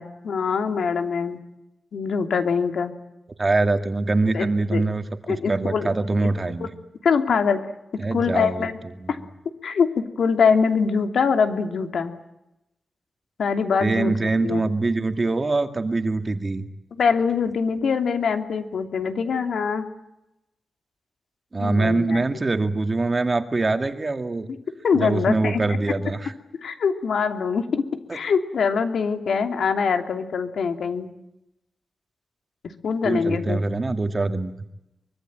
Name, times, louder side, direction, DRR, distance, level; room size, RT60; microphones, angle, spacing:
voice 1, 0.0-1.4 1.9-2.9 4.3-4.9 5.3-5.9 6.2-6.3 6.6-6.7 7.0-7.6 8.1-8.8 9.1-9.2 9.6-12.1 13.4-14.6 16.9-19.9 21.6-22.2 24.8-25.8 26.6-31.1 32.8-33.6, left 5 dB, 85° left, 6 dB, 3.0 m, -23 dB
voice 2, 3.4-6.7 8.0-8.7 9.0-9.1 13.8-16.6 21.5-24.5 24.9-26.3 33.0-34.5, right 3 dB, 25° right, 8 dB, 2.0 m, -24 dB
24.5 x 24.0 x 9.1 m, 0.89 s
wide cardioid pair, 155°, 0 cm